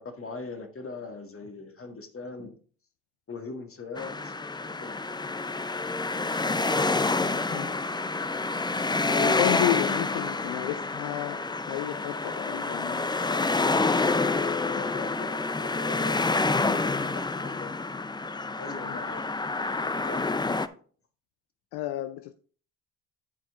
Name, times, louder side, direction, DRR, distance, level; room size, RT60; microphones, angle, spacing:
voice 1, 0.0-2.6 3.3-4.4 4.8-5.0 14.4-16.9 17.1-17.7 18.6-19.3 19.9-20.3, left 3 dB, 35° left, 1.8 m, -40 dB
sound 1, 4.0-20.7, left 3 dB, 10° left, 0.5 m, -28 dB
voice 2, 9.1-13.1 18.8-19.0 21.7-22.3, left 14 dB, 80° left, 0.5 m, -32 dB
11.0 x 4.4 x 3.6 m
hypercardioid pair, 55°, 38 cm